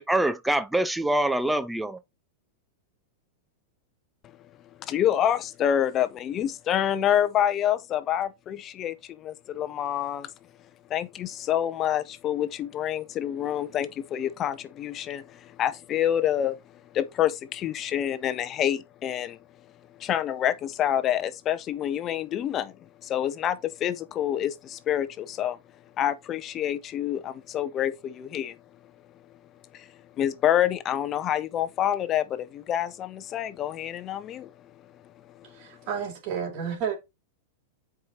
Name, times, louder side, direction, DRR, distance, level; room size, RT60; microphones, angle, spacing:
voice 1, 0.0-2.0, right 1 dB, 5° right, 0.5 m, -25 dB
voice 2, 4.8-10.3 10.9-16.6 16.9-19.4 20.0-25.6 26.0-28.6 29.7-29.9 30.2-34.7 35.2-35.6, left 10 dB, 35° left, 0.8 m, -27 dB
voice 3, 35.5-37.0, right 7 dB, 50° right, 3.2 m, -31 dB
7.5 x 4.9 x 4.0 m
hypercardioid pair, 125°, 0 cm